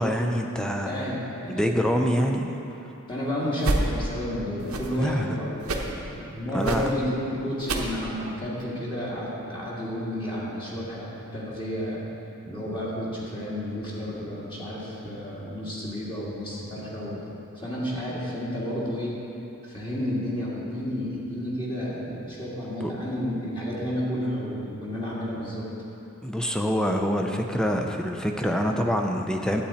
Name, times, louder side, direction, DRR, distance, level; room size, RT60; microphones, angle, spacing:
voice 1, 0.0-0.9 1.5-2.5 5.0-5.3 6.5-6.8 22.8-22.9 26.2-29.6, equal, 5° left, 2 dB, 0.6 m, -25 dB
voice 2, 0.8-1.7 3.1-12.0 12.4-17.2 17.6-19.2 19.6-25.7, equal, 20° left, -7 dB, 1.9 m, -31 dB
sound 1, 3.6-3.9 4.6-5.0 5.6-5.9 6.6-6.9 7.6-7.9 8.6-8.7, right 2 dB, 75° right, 1.0 m, -28 dB
11.5 x 8.7 x 4.3 m, 2.9 s
head